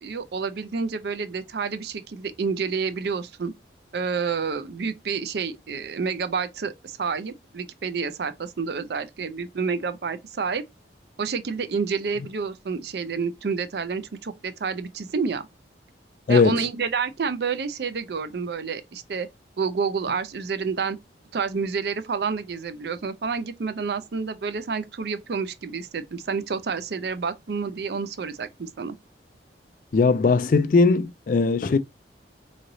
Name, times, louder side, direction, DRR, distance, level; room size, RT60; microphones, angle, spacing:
voice 1, 0.0-3.5 3.9-10.6 11.2-15.5 16.3-19.3 19.6-21.0 21.3-29.0, right 5 dB, 60° right, 0.4 m, -29 dB
voice 2, 16.3-16.6 29.9-31.8, left 4 dB, 45° left, 0.3 m, -19 dB
3.9 x 3.1 x 2.6 m
head